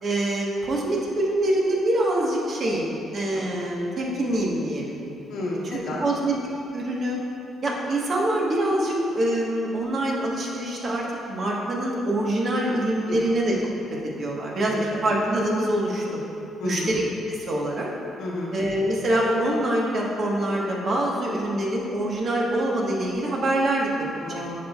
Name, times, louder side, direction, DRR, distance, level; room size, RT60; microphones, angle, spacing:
voice 1, 0.0-5.0 5.7-6.3 6.7-7.2 7.6-13.5 14.0-16.0 16.6-17.0 17.3-17.9 18.5-24.2, right 1 dB, 50° right, -3 dB, 1.3 m, -25 dB
voice 2, 5.3-6.0 13.1-13.2 14.7-15.0 16.6-17.0 18.2-18.5 24.1-24.5, left 2 dB, 85° left, -4 dB, 1.1 m, -32 dB
9.9 x 5.3 x 2.4 m, 2.8 s
cardioid pair, 90°, 0 cm